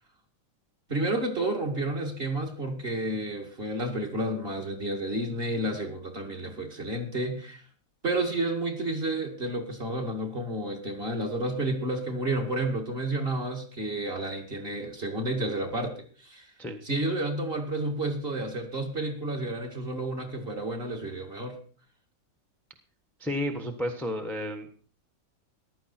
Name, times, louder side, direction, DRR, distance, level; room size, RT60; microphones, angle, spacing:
voice 1, 0.9-7.6 8.0-15.9 16.2-16.5 16.8-21.6, right 1 dB, 30° right, 2 dB, 2.3 m, -31 dB
voice 2, 23.2-24.8, left 1 dB, ahead, 2 dB, 1.1 m, -32 dB
15.0 x 12.0 x 4.4 m, 0.43 s
omnidirectional pair, 2.0 m